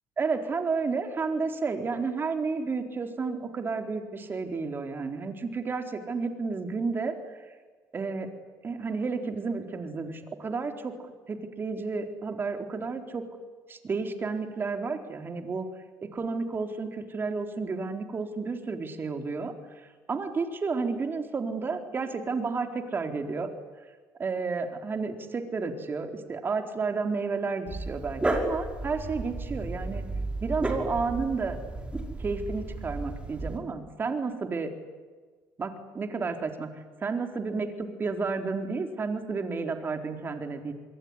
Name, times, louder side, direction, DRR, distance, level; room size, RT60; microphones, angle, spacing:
voice 1, 0.2-7.2 7.9-8.3 8.6-10.9 11.3-13.4 13.7-15.7 16.0-19.5 20.1-23.5 24.2-30.0 30.4-31.6 32.2-34.7 35.6-36.7 37.0-40.7, right 4 dB, 30° right, 6 dB, 4.2 m, -31 dB
Dog, 27.7-33.6, right 2 dB, 15° right, 5.9 m, -33 dB
26.5 x 22.5 x 9.9 m, 1.4 s
cardioid pair, 100°, 7 cm